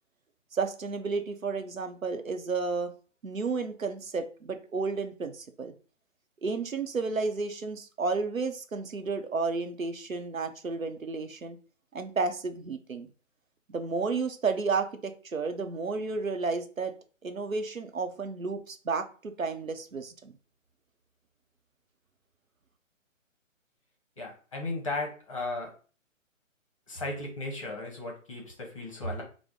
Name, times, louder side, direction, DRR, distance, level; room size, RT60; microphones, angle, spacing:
voice 1, 0.5-2.9 3.2-5.7 6.4-11.6 11.9-13.1 13.7-16.9 17.2-20.3, right 4 dB, 90° right, 7 dB, 0.7 m, -32 dB
voice 2, 24.2-25.7 26.9-29.2, left 2 dB, 25° left, 0 dB, 0.7 m, -35 dB
4.5 x 2.1 x 3.6 m, 0.38 s
figure-of-eight pair, 140°, 39 cm